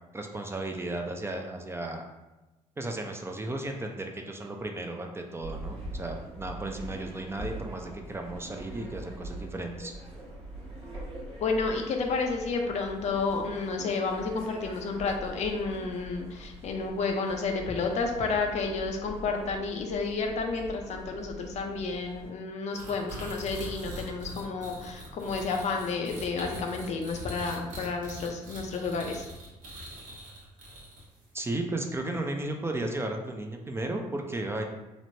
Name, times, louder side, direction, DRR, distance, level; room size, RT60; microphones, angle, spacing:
voice 1, 0.1-2.0 2.8-9.9 31.3-34.6, right 2 dB, 20° right, 3 dB, 0.4 m, -34 dB
sound 1, 5.4-22.3, right 1 dB, 45° right, 1.0 m, -43 dB
voice 2, 11.4-29.3, left 4 dB, 55° left, 3 dB, 0.5 m, -31 dB
sound 2, 22.7-31.2, right 1 dB, 70° right, 0.9 m, -42 dB
3.0 x 2.0 x 2.7 m, 1.1 s
supercardioid pair, 70°, 14 cm